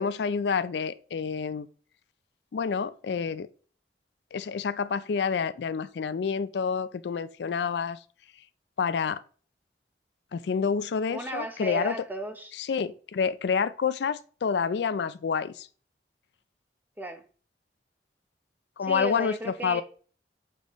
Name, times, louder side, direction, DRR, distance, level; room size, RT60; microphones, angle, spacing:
voice 1, 0.0-1.7 2.5-3.5 4.3-8.0 8.8-9.2 10.3-12.0 12.6-15.7 18.8-19.8, left 6 dB, 75° left, 0.4 m, -28 dB
voice 2, 11.1-12.6 17.0-17.2 18.8-19.8, right 1 dB, 10° right, 0.7 m, -35 dB
7.2 x 5.4 x 3.0 m
head